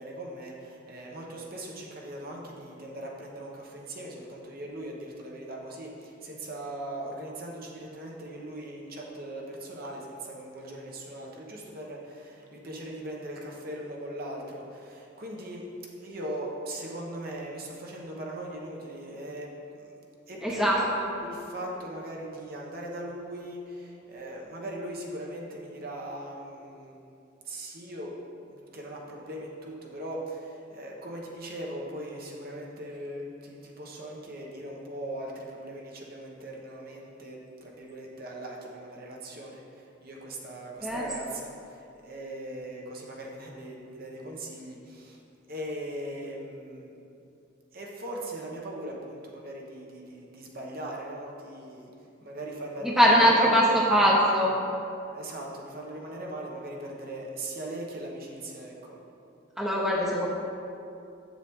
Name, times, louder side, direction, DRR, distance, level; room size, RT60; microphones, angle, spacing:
voice 1, 0.0-15.6 16.0-19.9 20.3-20.9 21.2-28.1 28.4-45.2 45.5-47.1 47.7-51.9 52.2-54.3 55.1-59.0, right 1 dB, 50° right, -2 dB, 1.1 m, -39 dB
voice 2, 20.4-21.1 40.8-41.0 52.8-54.5 59.6-60.3, equal, 5° right, -4 dB, 0.8 m, -22 dB
7.7 x 7.3 x 3.6 m, 2.7 s
head